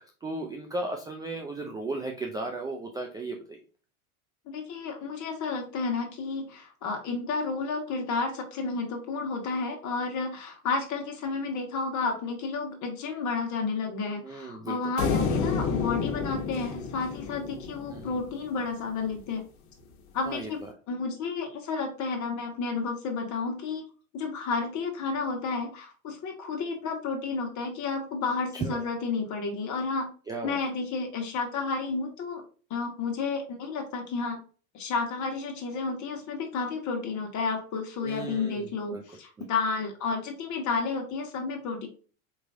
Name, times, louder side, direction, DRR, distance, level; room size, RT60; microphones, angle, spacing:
voice 1, 0.2-3.6 14.2-14.9 17.9-18.1 20.3-20.7 28.5-28.8 30.3-30.6 38.0-39.0, right 2 dB, 10° right, 2 dB, 0.3 m, -35 dB
voice 2, 4.5-19.4 20.1-20.6 20.9-23.8 24.1-30.1 30.4-32.4 32.7-34.4 34.7-41.9, left 4 dB, 40° left, 3 dB, 1.5 m, -31 dB
sound 1, 15.0-18.4, left 5 dB, 65° left, 1.2 m, -30 dB
4.5 x 3.1 x 2.6 m, 0.38 s
hypercardioid pair, 110°, 42 cm